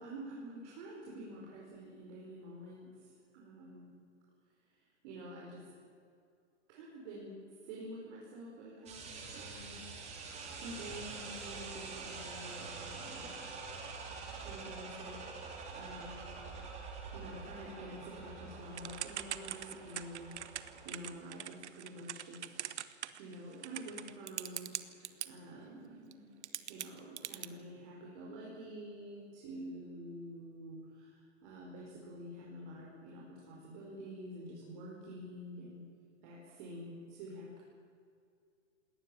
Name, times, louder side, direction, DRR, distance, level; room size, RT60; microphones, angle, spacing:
voice 1, 0.0-2.9 3.3-3.9 5.0-5.6 6.7-7.3 7.6-9.8 10.6-13.5 14.3-16.3 17.1-22.7 23.2-26.2 26.7-35.8 36.2-37.6, right 1 dB, 40° right, -3 dB, 5.1 m, -48 dB
sound 1, 8.9-20.9, right 4 dB, 20° right, 3.5 m, -46 dB
Typing / Telephone, 18.8-25.3 26.1-26.2 26.4-27.5, right 10 dB, 70° right, 1.2 m, -42 dB
21.5 x 18.0 x 7.3 m, 2.3 s
hypercardioid pair, 140°, 36 cm